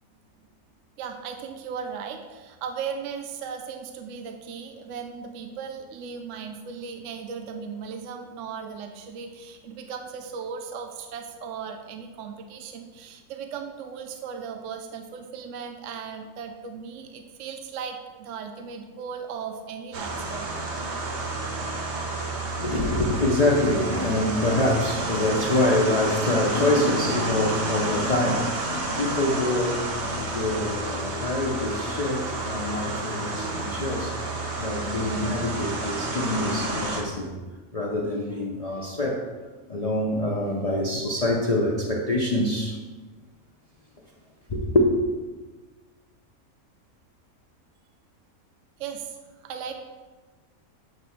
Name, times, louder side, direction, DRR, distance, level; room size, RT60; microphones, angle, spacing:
voice 1, 1.0-20.5 48.8-49.2 49.4-49.8, right 6 dB, 70° right, 5 dB, 0.8 m, -37 dB
sound 1, 19.9-37.0, right 2 dB, 50° right, 1.1 m, -30 dB
voice 2, 22.5-37.4 37.7-39.2 39.7-42.7 44.5-44.9, left 1 dB, 55° left, -2 dB, 0.4 m, -25 dB
7.5 x 3.1 x 5.6 m, 1.3 s
omnidirectional pair, 1.5 m